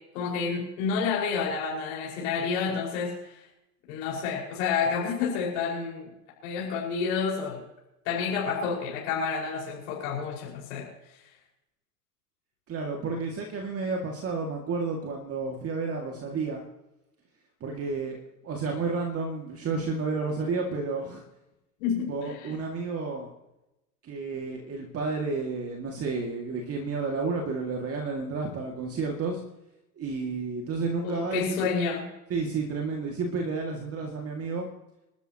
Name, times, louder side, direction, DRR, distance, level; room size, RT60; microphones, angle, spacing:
voice 1, 0.1-3.4 3.9-6.1 6.4-7.6 8.0-11.2 21.8-22.5 31.0-32.1, left 5 dB, 55° left, -3 dB, 5.8 m, -29 dB
voice 2, 12.7-16.6 17.6-18.2 18.4-21.2 22.1-23.3 24.0-29.4 30.0-31.6 32.3-34.7, right 4 dB, 30° right, 1 dB, 2.5 m, -31 dB
30.0 x 13.0 x 3.1 m, 0.93 s
figure-of-eight pair, 90°, 48 cm